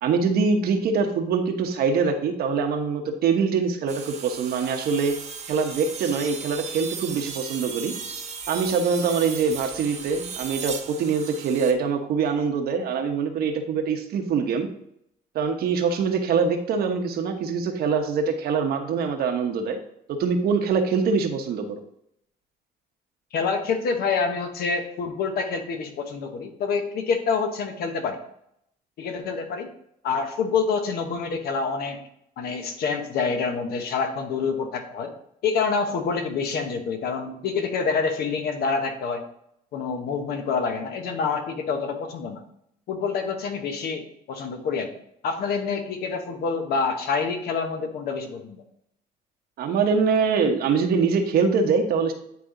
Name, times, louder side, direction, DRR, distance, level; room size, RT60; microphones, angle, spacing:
voice 1, 0.0-5.2 5.5-7.9 8.5-14.7 15.3-19.8 20.1-21.8 49.6-52.1, right 5 dB, 65° right, 5 dB, 1.0 m, -24 dB
sound 1, 3.9-11.7, right 5 dB, 45° right, 1.1 m, -36 dB
voice 2, 23.3-28.2 29.0-29.7 30.0-32.0 32.4-35.1 35.4-39.2 39.7-42.4 42.9-44.9 45.2-48.6, left 5 dB, 65° left, 6 dB, 1.1 m, -27 dB
9.5 x 3.4 x 3.8 m, 0.73 s
cardioid pair, 110°, 17 cm